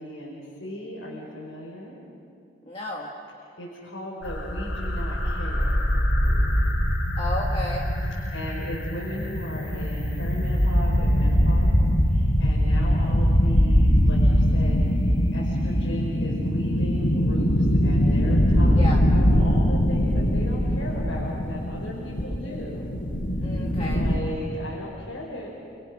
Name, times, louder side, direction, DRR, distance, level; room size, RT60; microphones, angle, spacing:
voice 1, 0.0-2.0 3.6-6.5 8.3-23.0 23.8-25.5, equal, 90° left, -5 dB, 5.5 m, -37 dB
voice 2, 2.6-3.1 7.2-7.9 18.7-19.0 23.4-24.0, left 1 dB, 30° left, -3 dB, 1.9 m, -32 dB
sound 1, 4.2-24.2, equal, 75° left, 5.9 m, -22 dB
28.5 x 27.5 x 6.5 m, 2.6 s
head